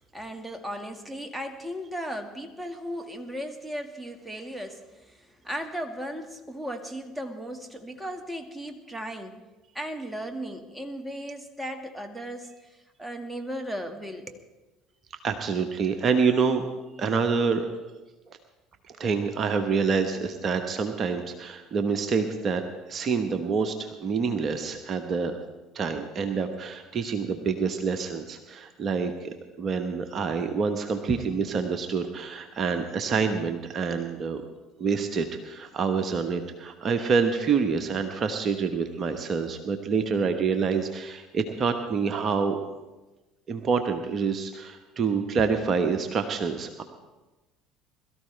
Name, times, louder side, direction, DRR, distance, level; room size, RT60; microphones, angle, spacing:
voice 1, 0.1-9.4 9.7-14.4, equal, 5° right, 4 dB, 1.9 m, -36 dB
voice 2, 15.2-16.6 17.0-17.7 18.9-25.4 25.7-29.3 29.6-34.4 34.8-42.6 43.5-46.8, right 5 dB, 40° right, 6 dB, 1.2 m, -27 dB
22.0 x 13.5 x 3.4 m, 1.1 s
hypercardioid pair, 65°, 0 cm